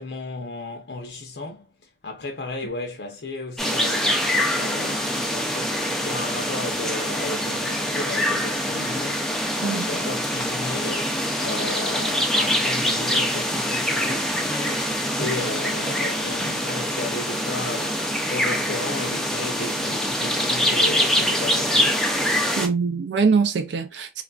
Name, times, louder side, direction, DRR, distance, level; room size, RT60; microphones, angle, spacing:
voice 1, 0.0-4.2 4.5-22.6, left 2 dB, 80° left, 0.6 m, -34 dB
sound 1, 3.6-22.7, equal, ahead, 0.4 m, -24 dB
voice 2, 22.6-24.2, right 5 dB, 85° right, 0.4 m, -23 dB
3.1 x 2.4 x 2.3 m
head